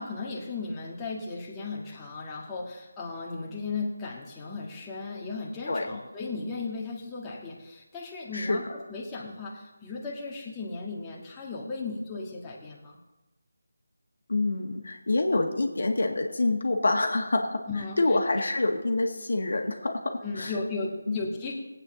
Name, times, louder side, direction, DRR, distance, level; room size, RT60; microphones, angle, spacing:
voice 1, 0.0-13.0 17.7-18.0 20.2-21.5, left 3 dB, 15° left, -4 dB, 1.6 m, -36 dB
voice 2, 5.7-6.0 8.3-8.6 14.3-17.6 18.0-20.5 21.1-21.2, left 2 dB, 65° left, 3 dB, 1.5 m, -26 dB
18.0 x 8.7 x 3.8 m, 1.1 s
figure-of-eight pair, 160°, 0 cm